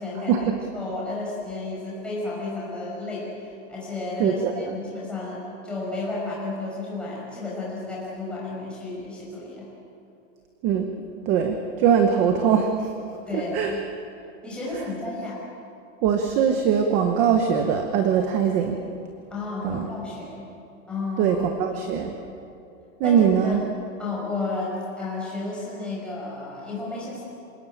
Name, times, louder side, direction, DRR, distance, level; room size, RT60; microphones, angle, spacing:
voice 1, 0.0-9.7 13.3-13.8 14.4-15.4 19.3-20.5 20.9-21.4 21.9-22.2 23.0-23.5 24.0-27.2, left 2 dB, 5° left, -6 dB, 6.2 m, -32 dB
voice 2, 4.2-4.7 10.6-10.9 11.3-12.9 13.3-13.7 16.0-18.8 19.6-19.9 21.2-22.1 23.0-23.6, right 7 dB, 20° right, 5 dB, 0.9 m, -21 dB
27.0 x 18.5 x 9.1 m, 2.7 s
supercardioid pair, 180°, 39 cm